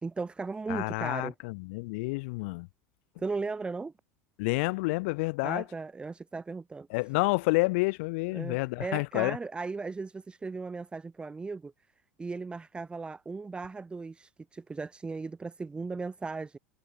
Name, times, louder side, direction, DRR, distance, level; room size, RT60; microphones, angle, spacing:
voice 1, 0.0-1.3 3.2-3.9 5.4-6.9 8.3-11.7 12.2-16.6, right 4 dB, 15° right, 0.4 m, -37 dB
voice 2, 0.7-2.7 4.4-5.6 6.9-9.4, left 26 dB, 65° left, 0.7 m, -29 dB
hypercardioid pair, 95°, 7 cm